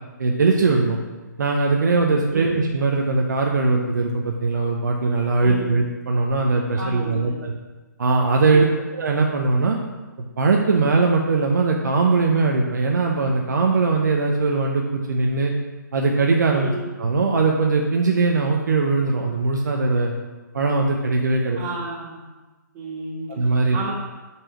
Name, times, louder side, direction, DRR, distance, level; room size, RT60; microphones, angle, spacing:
voice 1, 0.2-1.0 1.4-7.5 8.0-9.8 10.4-15.5 15.9-16.7 17.0-20.1 20.5-21.6 23.3-23.8, right 3 dB, 65° right, 1 dB, 0.8 m, -20 dB
voice 2, 6.7-7.4 8.5-8.7 16.5-16.8 21.6-22.2 22.7-23.3 23.7-23.9, right 3 dB, 25° right, -8 dB, 2.4 m, -31 dB
6.2 x 4.6 x 6.1 m, 1.2 s
figure-of-eight pair, 135°, 10 cm